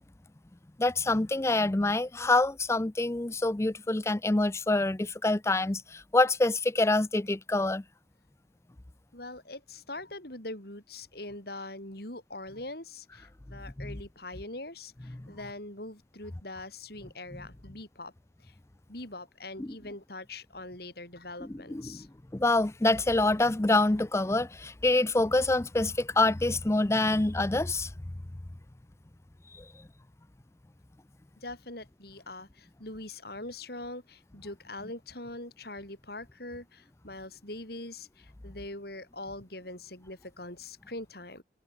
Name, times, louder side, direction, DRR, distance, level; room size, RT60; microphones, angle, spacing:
voice 1, 0.8-7.8 13.8-14.0 15.2-15.3 19.6-19.7 21.4-22.1 22.3-27.9 29.6-29.7, left 2 dB, 15° left, 0.5 m, -26 dB
voice 2, 9.1-18.1 18.4-18.5 18.9-22.1 31.4-41.4, left 2 dB, 55° left, 6.9 m, -42 dB
head